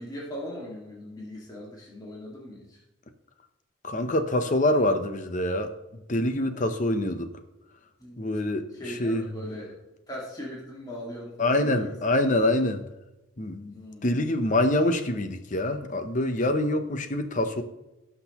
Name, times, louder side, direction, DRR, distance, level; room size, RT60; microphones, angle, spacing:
voice 1, 0.0-2.8 6.5-6.7 8.0-8.3 8.7-9.7 10.1-12.0 13.7-14.1, equal, 20° left, -4 dB, 1.9 m, -39 dB
voice 2, 3.8-7.3 8.2-9.4 11.4-12.8 13.4-13.8 14.0-17.6, left 1 dB, 40° left, 8 dB, 0.8 m, -25 dB
17.5 x 6.0 x 3.0 m, 0.97 s
head